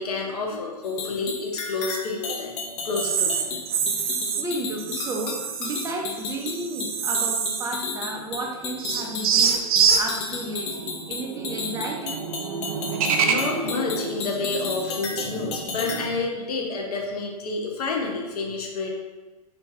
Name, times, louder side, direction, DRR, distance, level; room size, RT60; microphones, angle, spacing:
voice 1, 0.0-3.4 13.2-18.9, left 3 dB, 75° left, 1 dB, 0.8 m, -29 dB
sound 1, 0.8-16.1, left 4 dB, 35° left, 0.6 m, -33 dB
sound 2, 2.9-4.5 4.8-5.9 6.3-7.9 8.2-8.3 8.8-16.2, right 6 dB, 65° right, 0.5 m, -27 dB
voice 2, 4.4-9.6 10.0-12.2, right 2 dB, 15° right, 0 dB, 0.5 m, -32 dB
2.9 x 2.7 x 3.6 m, 1.2 s
hypercardioid pair, 120°, 20 cm